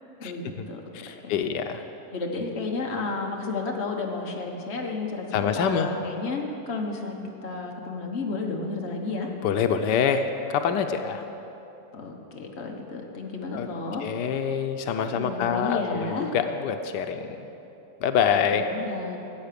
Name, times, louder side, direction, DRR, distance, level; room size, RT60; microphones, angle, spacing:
voice 1, 0.2-0.8 1.2-1.4 2.1-9.3 11.9-14.0 15.1-16.3 18.3-19.2, left 3 dB, 40° left, 1 dB, 1.4 m, -32 dB
voice 2, 1.0-1.8 5.3-5.9 9.4-11.2 13.5-13.7 14.0-17.4 18.0-18.6, left 7 dB, 85° left, 7 dB, 1.3 m, -25 dB
14.0 x 8.8 x 6.8 m, 2.9 s
omnidirectional pair, 1.8 m